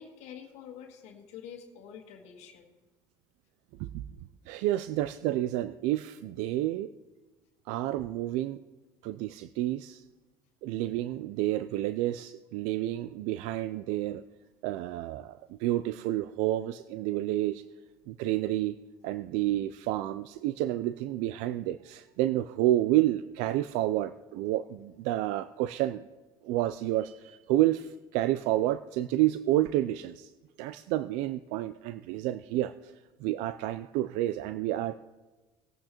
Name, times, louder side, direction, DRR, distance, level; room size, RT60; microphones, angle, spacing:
voice 1, 0.0-2.7, left 8 dB, 70° left, 3 dB, 1.6 m, -47 dB
voice 2, 4.5-6.9 7.7-8.6 9.0-10.0 10.6-14.2 14.6-17.6 18.1-18.8 19.0-26.0 26.4-30.3 30.6-32.9 33.2-35.0, right 14 dB, 75° right, 13 dB, 0.4 m, -29 dB
19.5 x 8.7 x 3.0 m, 1.2 s
supercardioid pair, 85°, 12 cm